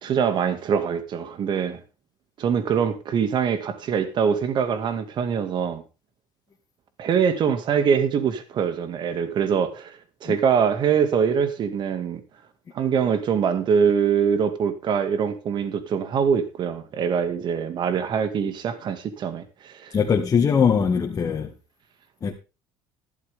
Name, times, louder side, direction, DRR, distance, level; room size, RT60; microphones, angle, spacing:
voice 1, 0.0-1.8 2.4-5.8 7.0-12.2 12.7-20.0, right 7 dB, 50° right, 2.3 m, -23 dB
voice 2, 19.9-21.5 22.2-22.3, left 6 dB, 30° left, 2.1 m, -21 dB
13.5 x 12.0 x 3.7 m
supercardioid pair, 105°, 10 cm